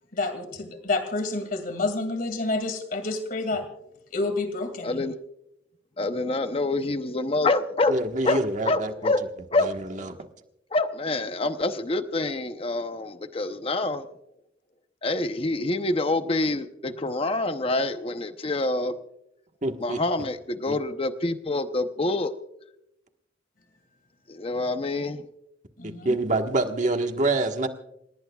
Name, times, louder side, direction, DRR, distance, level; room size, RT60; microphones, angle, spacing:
voice 1, 0.1-3.7 4.1-5.0 25.8-26.1, left 2 dB, 50° left, 8 dB, 2.4 m, -29 dB
voice 2, 4.8-5.1 6.0-8.0 8.2-9.2 9.5-10.0 10.7-14.1 15.0-18.9 19.8-22.3 24.3-25.3, left 2 dB, 30° left, 9 dB, 0.8 m, -26 dB
voice 3, 7.9-9.1 9.6-10.3 19.6-20.0 20.7-20.8 25.8-27.7, right 2 dB, 40° right, 5 dB, 1.5 m, -26 dB
29.0 x 18.5 x 2.4 m, 0.82 s
head